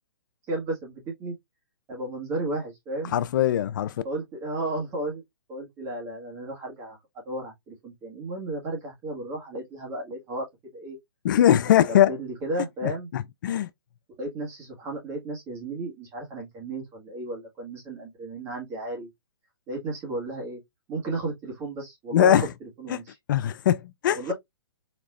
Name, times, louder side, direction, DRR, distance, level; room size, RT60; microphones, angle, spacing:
voice 1, 0.5-1.3 1.9-3.1 4.0-5.2 5.5-7.0 7.3-10.4 10.7-11.0 11.9-13.1 14.2-19.1 19.7-20.6 20.9-23.2 24.2-24.3, right 2 dB, 20° right, 1.7 m, -33 dB
voice 2, 3.1-3.9 11.2-12.1 12.8-13.7 22.1-22.5 22.9-23.0 23.3-24.2, left 11 dB, 50° left, 0.4 m, -21 dB
4.3 x 3.0 x 2.4 m
hypercardioid pair, 140°, 13 cm